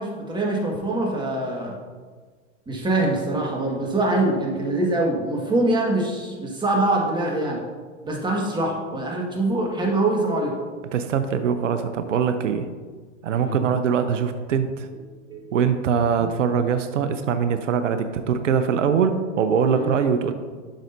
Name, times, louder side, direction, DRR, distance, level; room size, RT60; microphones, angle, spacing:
voice 1, 0.0-1.7 2.7-7.6 8.0-10.5 13.4-13.6 15.3-15.5 16.2-16.3 19.7-19.9, right 2 dB, 10° right, -2 dB, 1.7 m, -24 dB
voice 2, 10.9-12.7 13.2-14.9 15.5-20.3, right 7 dB, 85° right, 9 dB, 0.7 m, -22 dB
10.5 x 6.2 x 2.7 m, 1.5 s
hypercardioid pair, 110°, 36 cm